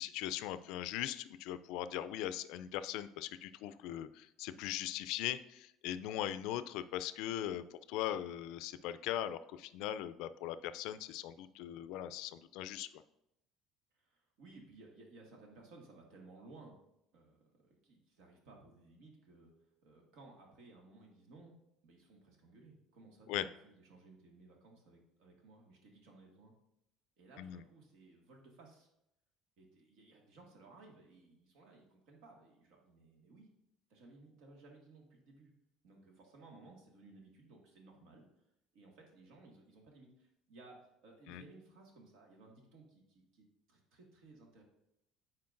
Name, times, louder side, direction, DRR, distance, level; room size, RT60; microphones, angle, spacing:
voice 1, 0.0-13.0 23.3-23.4 27.4-27.6 41.3-41.4, left 12 dB, 75° left, 13 dB, 0.3 m, -40 dB
voice 2, 13.9-16.8 17.1-19.5 19.8-21.5 21.8-26.5 27.2-28.9 29.6-33.5 33.9-35.5 35.8-38.3 38.7-44.6, right 3 dB, 75° right, 0 dB, 1.7 m, -59 dB
9.5 x 4.3 x 2.5 m, 0.81 s
cardioid pair, 135°, 0 cm